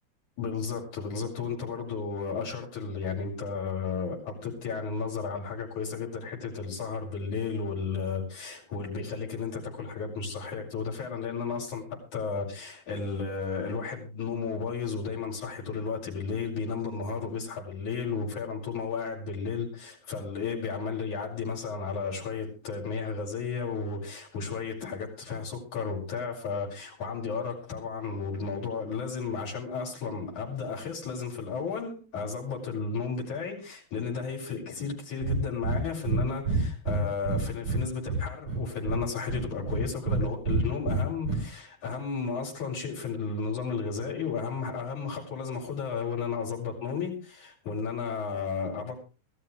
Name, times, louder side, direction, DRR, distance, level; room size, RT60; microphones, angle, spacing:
voice 1, 0.4-48.9, left 5 dB, 80° left, -3 dB, 7.5 m, -33 dB
Breathing, 35.2-35.4 35.6-35.8 36.1-36.2 36.5-37.8 38.1-39.0 39.3-40.2 40.5-41.4, right 4 dB, 45° right, 6.2 m, -27 dB
22.0 x 13.5 x 3.3 m, 0.34 s
omnidirectional pair, 3.3 m